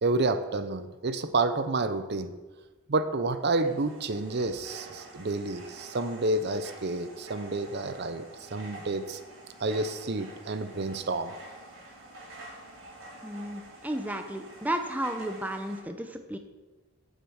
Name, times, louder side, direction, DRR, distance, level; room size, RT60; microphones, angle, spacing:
voice 1, 0.0-2.3 2.9-9.2 9.6-11.3, right 2 dB, 50° right, 10 dB, 0.6 m, -29 dB
sound 1, 3.4-15.8, right 1 dB, 65° right, 4.3 m, -48 dB
voice 2, 13.2-16.4, right 1 dB, 5° right, 6 dB, 0.7 m, -33 dB
9.2 x 7.2 x 7.8 m, 1.2 s
head